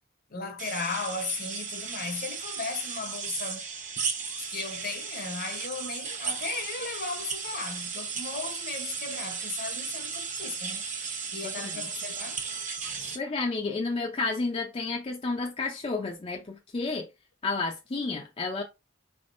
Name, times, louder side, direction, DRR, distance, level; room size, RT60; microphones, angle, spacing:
voice 1, 0.3-3.7 4.4-10.9 11.3-12.4 13.0-13.2, left 4 dB, 50° left, 0.8 m, -36 dB
sound 1, 0.6-13.2, right 5 dB, 40° right, 1.0 m, -35 dB
voice 2, 11.4-11.9 13.1-17.1 17.4-18.6, left 3 dB, 30° left, 0.5 m, -31 dB
4.7 x 3.5 x 2.5 m
head